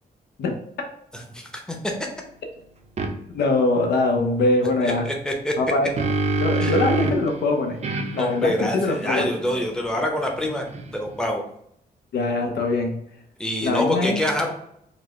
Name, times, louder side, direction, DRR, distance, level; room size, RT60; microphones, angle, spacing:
voice 1, 1.1-1.9 4.8-5.5 6.6-6.8 8.2-10.7 10.9-11.4 13.4-14.5, left 1 dB, 5° left, 1 dB, 0.7 m, -26 dB
sound 1, 3.0-3.1 5.5-7.3 7.8-11.2, right 2 dB, 40° right, 0.5 m, -27 dB
voice 2, 3.3-5.1 5.6-5.9 6.4-7.8 8.1-9.3 12.1-13.0 13.6-14.2, left 2 dB, 80° left, 3 dB, 0.6 m, -22 dB
4.0 x 2.1 x 3.1 m, 0.71 s
cardioid pair, 90°, 17 cm